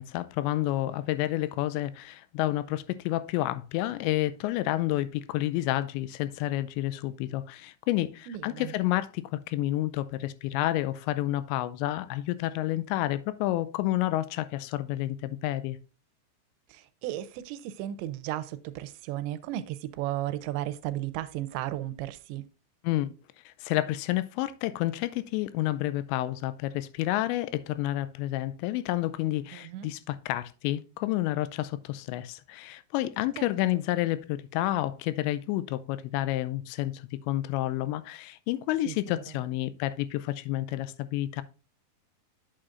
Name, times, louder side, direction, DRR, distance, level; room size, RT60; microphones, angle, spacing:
voice 1, 0.0-15.8 22.8-23.1 23.5-41.4, left 15 dB, 90° left, 2.9 m, -30 dB
voice 2, 8.3-8.7 16.7-22.4 29.5-29.9 38.9-39.2, right 13 dB, 90° right, 2.9 m, -35 dB
8.6 x 7.7 x 2.5 m
omnidirectional pair, 5.0 m